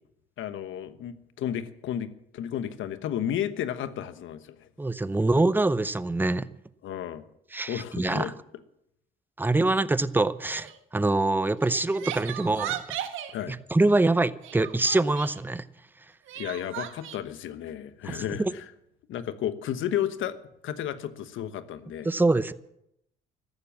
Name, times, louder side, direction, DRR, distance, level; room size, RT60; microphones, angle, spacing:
voice 1, 0.4-4.7 6.8-7.3 7.7-8.3 13.3-13.6 16.4-18.7 19.1-20.4 20.6-22.1, left 10 dB, 80° left, 12 dB, 1.1 m, -33 dB
voice 2, 4.8-6.5 7.5-8.3 9.4-12.8 13.5-15.7 18.1-18.5 22.0-22.5, right 2 dB, 10° right, 15 dB, 0.7 m, -24 dB
Crying sobbing, 10.5-10.8 11.6-13.3 14.4-15.4 16.3-17.2, right 11 dB, 85° right, 1.5 m, -36 dB
14.5 x 12.0 x 7.4 m, 0.79 s
cardioid pair, 90°, 20 cm